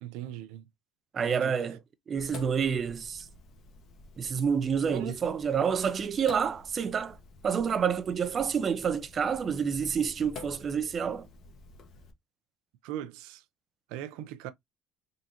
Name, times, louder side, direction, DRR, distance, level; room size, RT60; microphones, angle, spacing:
voice 1, 0.0-0.7 1.3-1.6 4.9-5.1 12.8-13.4 13.9-14.5, right 12 dB, 75° right, 0.6 m, -39 dB
voice 2, 1.1-1.8 2.1-3.3 4.2-7.2 7.4-11.3, right 7 dB, 25° right, 0.5 m, -28 dB
Sink (filling or washing), 2.2-12.1, left 3 dB, 40° left, 1.1 m, -50 dB
3.8 x 3.8 x 2.8 m
cardioid pair, 160°, 0 cm